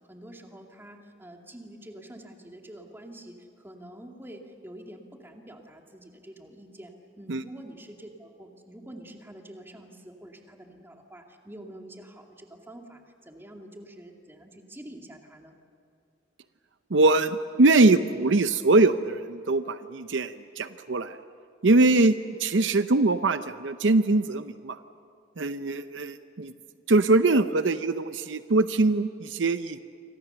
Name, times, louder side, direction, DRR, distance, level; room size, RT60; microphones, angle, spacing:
voice 1, 0.1-15.5, right 1 dB, 10° right, 2 dB, 2.4 m, -46 dB
voice 2, 16.9-21.2 21.6-24.8 25.4-26.5 26.9-29.8, right 2 dB, 70° right, 11 dB, 0.7 m, -22 dB
28.0 x 25.0 x 6.9 m, 2.5 s
head